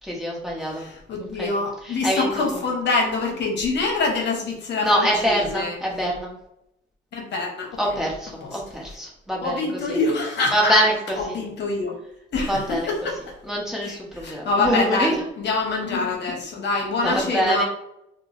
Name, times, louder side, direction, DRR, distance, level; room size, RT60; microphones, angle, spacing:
voice 1, 0.0-0.8 1.4-1.5 1.9-2.3 4.8-6.3 7.8-9.6 9.9-10.0 10.5-11.4 12.5-12.9 13.4-15.3 17.0-17.6, equal, ahead, -3 dB, 0.9 m, -24 dB
voice 2, 0.6-5.8 7.1-7.7 8.4-8.5 9.4-10.9 11.2-12.0 12.3-13.2 13.8-17.6, left 3 dB, 60° left, 1 dB, 0.8 m, -25 dB
4.4 x 2.0 x 2.6 m, 0.80 s
cardioid pair, 90°, 20 cm